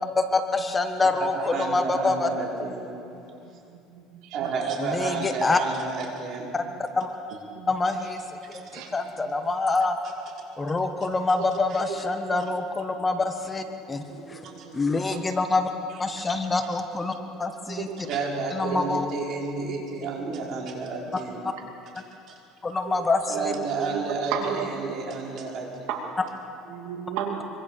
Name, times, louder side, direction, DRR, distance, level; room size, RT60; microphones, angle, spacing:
voice 1, 0.1-2.3 4.8-5.6 6.5-6.6 6.9-7.1 7.7-10.0 10.6-14.0 14.3-14.4 14.7-15.7 16.0-17.1 17.4-17.9 18.5-19.0 22.6-23.5, left 3 dB, 20° left, 6 dB, 1.5 m, -26 dB
voice 2, 1.2-2.9 4.3-6.5 8.5-8.8 11.7-11.8 14.4-14.7 16.2-16.3 18.0-21.4 21.9-22.3 23.3-25.9, right 4 dB, 50° right, -2 dB, 5.7 m, -31 dB
voice 3, 3.9-4.4 7.5-7.7 8.7-8.9 12.3-12.4 14.1-15.2 17.7-18.0 18.7-18.8 23.3-24.9 25.9-26.0 26.7-27.4, right 8 dB, 75° right, 2 dB, 2.7 m, -34 dB
25.0 x 24.5 x 6.7 m, 2.7 s
cardioid pair, 125°, 0 cm